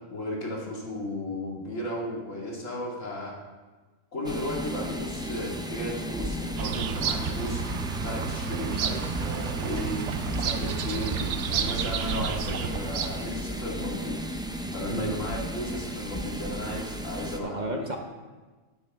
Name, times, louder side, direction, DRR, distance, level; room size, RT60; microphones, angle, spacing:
voice 1, 0.1-3.3 4.1-7.6 8.0-10.0 10.2-11.2 11.5-14.2 14.7-17.8, left 1 dB, 80° left, -3 dB, 2.5 m, -35 dB
sound 1, 4.2-17.4, equal, 5° right, 0.3 m, -34 dB
Bird vocalization bird call bird song, 6.6-13.3, right 8 dB, 70° right, 0.9 m, -31 dB
voice 2, 14.9-15.2 17.4-18.0, right 2 dB, 40° right, 3 dB, 0.9 m, -32 dB
12.0 x 9.7 x 3.6 m, 1.3 s
omnidirectional pair, 1.3 m